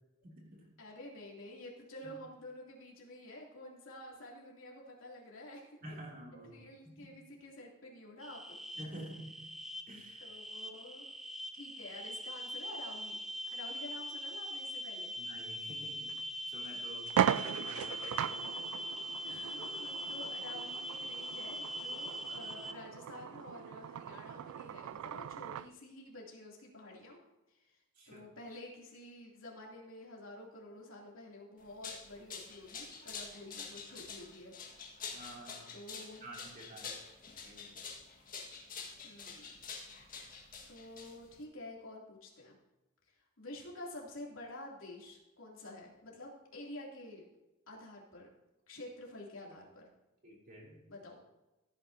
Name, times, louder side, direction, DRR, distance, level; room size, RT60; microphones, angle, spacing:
voice 1, 0.2-0.7 2.0-2.1 5.8-6.5 6.8-7.1 8.8-9.4 9.9-10.2 15.2-16.1 16.5-18.4 28.0-28.2 35.1-35.7 36.2-37.0 37.4-37.8 50.2-50.8, right 1 dB, 40° right, -2 dB, 3.0 m, -49 dB
voice 2, 0.8-5.8 6.5-8.6 10.2-11.1 11.5-13.2 13.5-15.1 19.2-27.2 27.5-27.7 28.1-34.5 35.7-36.2 39.0-39.6 40.7-42.6 43.4-47.2 47.7-48.3 48.7-49.9 50.9-51.2, left 1 dB, 70° left, -3 dB, 2.8 m, -49 dB
sound 1, 8.2-22.7, equal, ahead, 0.5 m, -42 dB
sound 2, 16.1-16.2 16.6-16.7 17.1-25.7, right 9 dB, 85° right, 0.3 m, -38 dB
sound 3, 31.6-41.4, left 5 dB, 40° left, 1.7 m, -47 dB
15.0 x 9.0 x 2.8 m, 1.0 s
head